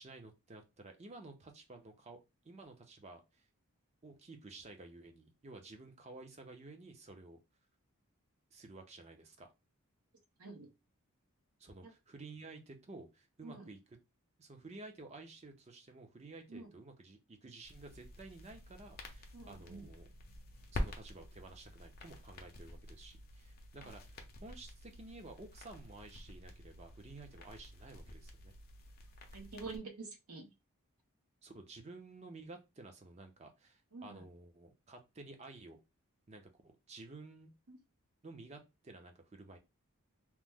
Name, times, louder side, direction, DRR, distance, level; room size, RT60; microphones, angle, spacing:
voice 1, 0.0-3.5 4.0-7.4 8.5-9.5 11.6-14.0 14.4-20.1 20.7-24.0 24.4-28.5 29.6-29.8 31.4-35.8 36.3-37.5 38.2-39.6, right 3 dB, 30° right, 0.5 m, -53 dB
voice 2, 10.4-10.7 11.8-11.9 13.4-13.7 16.5-16.7 19.3-19.9 23.8-23.9 29.3-30.5 33.9-34.2 37.7-37.8, right 3 dB, 85° right, 0.9 m, -47 dB
sound 1, 17.6-29.8, left 1 dB, 40° left, 0.5 m, -48 dB
3.0 x 2.1 x 3.4 m
head